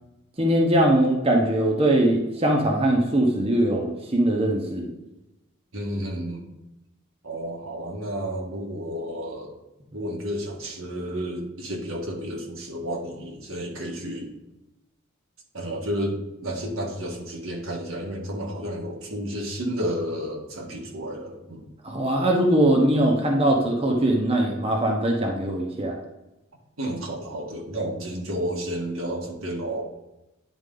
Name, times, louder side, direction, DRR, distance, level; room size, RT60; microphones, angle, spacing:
voice 1, 0.4-4.9 21.8-25.9, right 1 dB, 30° right, 0 dB, 1.0 m, -21 dB
voice 2, 5.7-6.5 7.2-9.5 9.9-14.3 15.5-21.7 26.8-29.8, equal, 80° right, 0 dB, 1.7 m, -31 dB
10.0 x 4.3 x 3.9 m, 0.94 s
head